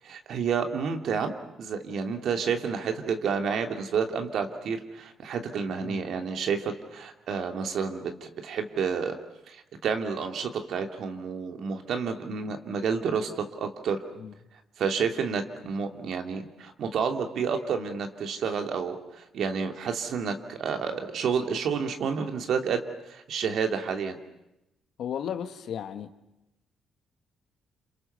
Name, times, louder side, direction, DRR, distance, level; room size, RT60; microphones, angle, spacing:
voice 1, 0.0-1.3 1.6-9.1 9.5-14.0 14.8-22.8 23.1-24.2, right 6 dB, 70° right, 5 dB, 3.0 m, -30 dB
voice 2, 25.0-26.1, left 8 dB, 70° left, 8 dB, 1.9 m, -34 dB
30.0 x 28.0 x 6.9 m, 0.90 s
cardioid pair, 90°, 0 cm